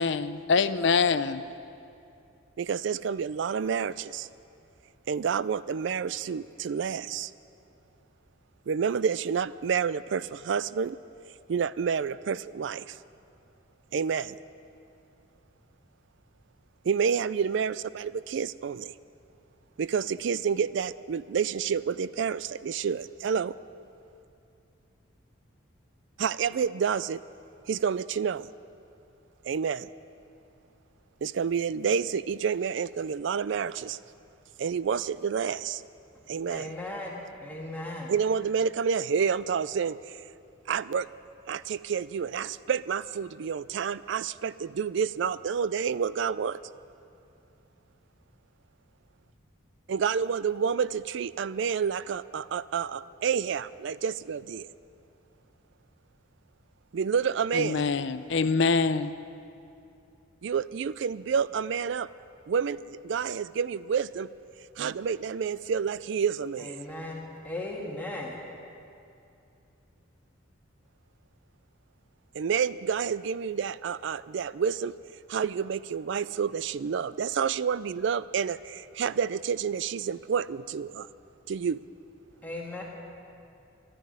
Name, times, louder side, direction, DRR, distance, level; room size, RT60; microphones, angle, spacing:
voice 1, 0.0-1.4 57.5-59.1, left 4 dB, 60° left, 13 dB, 0.5 m, -25 dB
voice 2, 2.6-4.3 5.1-7.3 8.7-11.0 11.5-13.0 13.9-14.4 16.8-19.0 19.8-23.5 26.2-27.2 27.7-28.5 29.4-29.9 31.2-34.0 34.6-35.8 36.3-36.7 38.1-40.2 40.7-41.1 41.5-46.6 49.9-54.7 56.9-57.8 60.4-62.1 62.5-64.3 64.8-66.8 72.3-75.0 75.3-81.1 81.5-81.8, right 6 dB, 60° right, 17 dB, 0.3 m, -29 dB
voice 3, 36.5-38.1 66.6-68.4 82.4-82.8, left 1 dB, 10° left, -3 dB, 1.8 m, -37 dB
12.0 x 10.5 x 9.7 m, 2.7 s
head